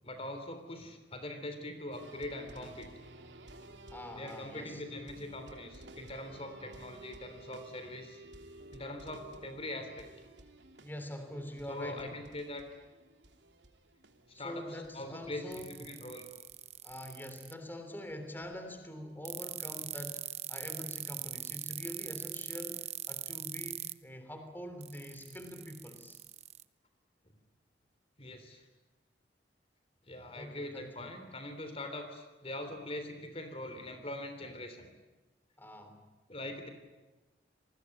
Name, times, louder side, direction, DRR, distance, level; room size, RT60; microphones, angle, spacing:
voice 1, 0.0-2.9 4.1-8.2 8.7-10.1 11.7-12.7 14.4-16.2 28.2-28.6 30.1-34.9 36.3-36.7, left 1 dB, 35° left, 8 dB, 3.3 m, -42 dB
sound 1, 1.9-16.6 16.9-17.0 17.3-17.4 18.1-18.2 18.5-19.1 19.7-19.8, right 1 dB, 80° right, 3.0 m, -54 dB
voice 2, 3.9-4.8 10.8-12.0 14.3-15.7 16.8-26.2 30.3-31.1 35.6-36.0, left 1 dB, 10° left, 6 dB, 3.3 m, -45 dB
sound 2, 15.5-17.5 19.2-23.9 24.8-26.6, right 12 dB, 40° right, 1.0 m, -40 dB
28.5 x 21.0 x 9.7 m, 1.1 s
head